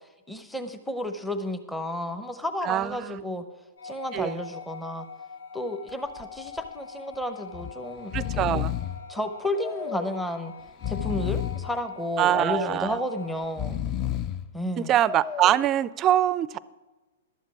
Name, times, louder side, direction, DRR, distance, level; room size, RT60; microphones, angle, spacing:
voice 1, 0.3-3.4 3.8-5.0 5.5-8.4 9.1-10.5 10.9-13.8 14.5-14.9, left 1 dB, 5° left, 7 dB, 0.8 m, -32 dB
voice 2, 2.6-3.4 4.1-4.4 8.1-8.7 12.2-13.0 14.8-16.6, right 12 dB, 30° right, 19 dB, 0.4 m, -24 dB
sound 1, 3.8-13.5, left 5 dB, 75° left, 0.6 m, -43 dB
Breathing, 5.9-6.2 6.6-6.7 7.5-7.7 8.0-9.0 9.6-10.2 10.7-11.7 12.3-12.9 13.4-14.4 15.0-15.7, left 10 dB, 30° left, 0.5 m, -31 dB
11.5 x 7.3 x 6.0 m, 1.2 s
hypercardioid pair, 120°, 0 cm